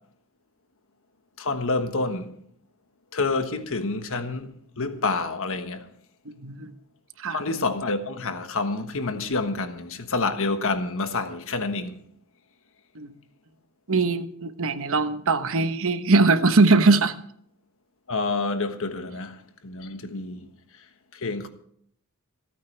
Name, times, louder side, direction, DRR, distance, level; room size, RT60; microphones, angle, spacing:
voice 1, 1.4-2.3 3.1-5.9 7.3-12.0 18.1-19.4 19.6-20.5 21.1-21.5, left 3 dB, 65° left, 1.4 m, -28 dB
voice 2, 13.9-17.1, right 3 dB, 65° right, 1.1 m, -21 dB
27.5 x 9.3 x 3.4 m
head